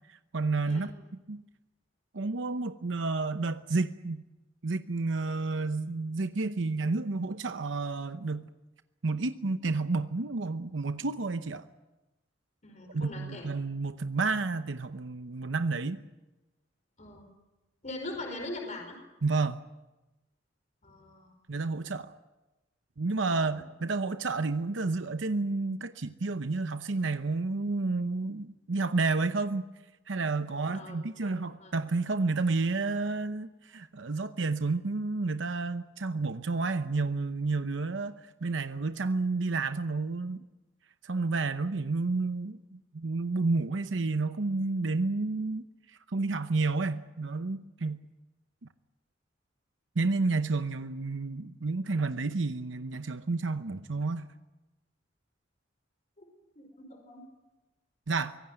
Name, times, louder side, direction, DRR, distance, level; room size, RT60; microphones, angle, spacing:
voice 1, 0.1-0.9 1.3-1.4 2.1-4.2 4.6-8.5 9.0-11.7 12.9-16.0 19.2-19.6 21.5-22.1 23.0-29.7 30.1-40.4 41.0-48.0 50.0-54.3 58.1-58.4, right 3 dB, 75° right, 0.8 m, -30 dB
voice 2, 0.6-1.0 12.6-13.5 17.0-17.3 17.8-19.0 20.8-21.3 23.2-23.6 30.7-31.7 56.2-56.3 56.5-57.2, left 2 dB, 40° left, 5.0 m, -42 dB
24.5 x 17.0 x 8.9 m
head